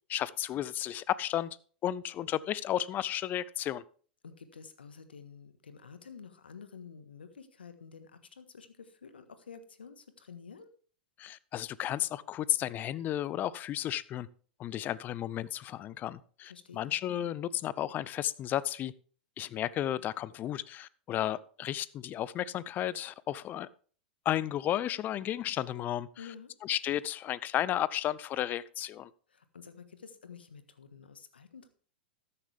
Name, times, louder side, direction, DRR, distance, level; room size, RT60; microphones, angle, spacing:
voice 1, 0.1-1.5 1.8-3.8 11.2-14.3 14.6-18.9 19.4-23.7 24.2-26.1 26.6-29.1, left 12 dB, 35° left, 0.6 m, -33 dB
voice 2, 4.2-10.7 16.5-16.9 26.2-26.5 29.3-31.7, left 6 dB, 85° left, 1.5 m, -50 dB
13.0 x 9.8 x 3.5 m
hypercardioid pair, 100°, 5 cm